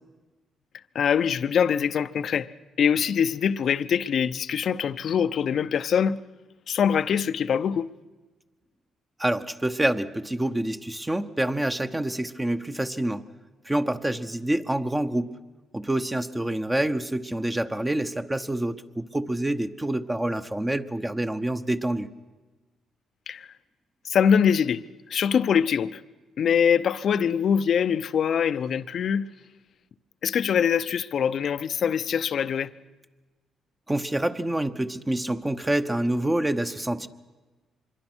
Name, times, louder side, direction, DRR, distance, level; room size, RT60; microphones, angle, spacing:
voice 1, 0.9-2.5 2.8-6.2 6.7-7.9 23.3-23.5 24.0-24.8 25.1-26.0 26.4-29.3 30.2-32.7, left 7 dB, 60° left, 0.7 m, -23 dB
voice 2, 9.2-13.2 13.6-15.3 15.7-22.1 33.9-37.1, right 1 dB, 15° right, 1.0 m, -27 dB
25.5 x 22.5 x 6.2 m
cardioid pair, 90°, 0 cm